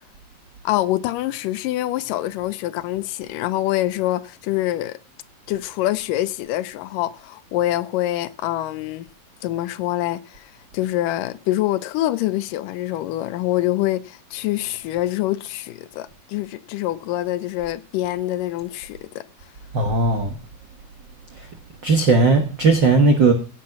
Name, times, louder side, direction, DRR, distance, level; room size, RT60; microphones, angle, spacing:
voice 1, 0.6-5.0 5.5-9.1 9.4-19.3, left 15 dB, 75° left, 2.2 m, -25 dB
voice 2, 19.7-20.4 21.3-21.5 21.8-23.3, right 3 dB, 55° right, 1.3 m, -17 dB
17.0 x 7.4 x 5.9 m
omnidirectional pair, 4.2 m